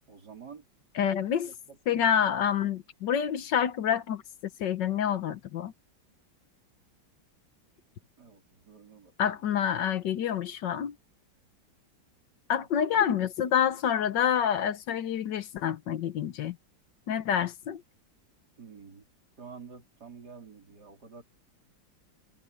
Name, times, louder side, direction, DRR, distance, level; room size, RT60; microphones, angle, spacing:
voice 1, 0.1-0.7 1.4-1.8 8.2-9.4 12.9-13.1 18.6-19.1 19.4-21.2, right 6 dB, 60° right, 4.5 m, -49 dB
voice 2, 1.0-1.5 1.9-4.2 4.6-5.7 9.2-10.9 12.5-16.6 17.1-17.8, left 8 dB, 70° left, 1.6 m, -27 dB
omnidirectional pair, 2.0 m